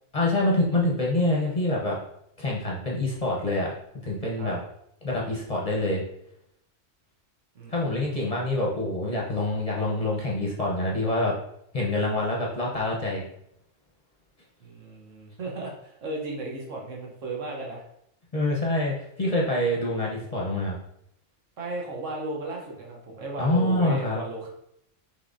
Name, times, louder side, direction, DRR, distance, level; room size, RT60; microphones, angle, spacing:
voice 1, 0.1-2.0 2.4-3.7 4.0-4.6 5.0-6.0 7.7-11.4 11.7-13.2 18.3-20.8 23.4-24.2, left 1 dB, 35° left, -3 dB, 0.7 m, -26 dB
voice 2, 7.5-8.3 14.6-17.8 21.6-24.5, right 2 dB, 80° right, -1 dB, 1.4 m, -35 dB
5.7 x 3.4 x 2.6 m, 0.75 s
omnidirectional pair, 1.3 m